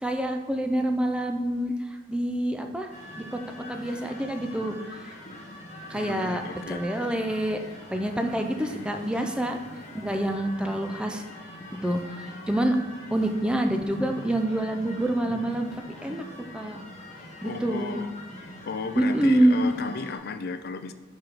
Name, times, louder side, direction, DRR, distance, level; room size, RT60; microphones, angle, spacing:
voice 1, 0.0-2.9 3.3-3.4 3.7-5.1 5.9-6.4 6.7-7.6 7.9-9.6 9.9-11.2 11.8-12.8 13.1-16.3 16.5-16.8 17.4-18.0 19.0-19.7, right 1 dB, 5° right, 5 dB, 0.4 m, -26 dB
sound 1, 2.9-20.2, left 1 dB, 35° left, 1.2 m, -43 dB
voice 2, 5.9-6.9 17.4-18.1 18.6-20.9, left 4 dB, 50° left, 10 dB, 0.4 m, -34 dB
5.7 x 4.5 x 5.1 m, 1.3 s
head